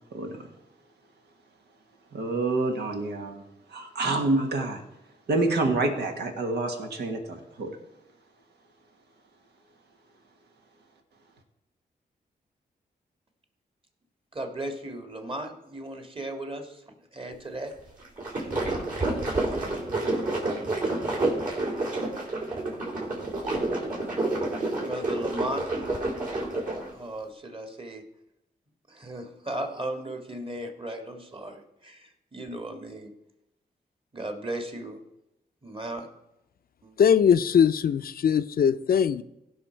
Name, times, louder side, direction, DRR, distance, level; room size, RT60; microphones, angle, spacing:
voice 1, 2.1-3.4 3.7-4.8 5.3-7.8, right 2 dB, 85° right, 1.6 m, -27 dB
voice 2, 14.3-17.7 18.4-18.5 24.8-25.7 26.9-28.0 28.9-33.2 34.1-35.0 35.6-36.1 36.8-36.9, right 1 dB, 30° right, 1.9 m, -36 dB
sound 1, 18.0-26.9, right 2 dB, 55° right, 4.4 m, -29 dB
voice 3, 37.0-39.2, left 7 dB, 60° left, 0.5 m, -21 dB
16.0 x 5.8 x 4.5 m
cardioid pair, 65°, 17 cm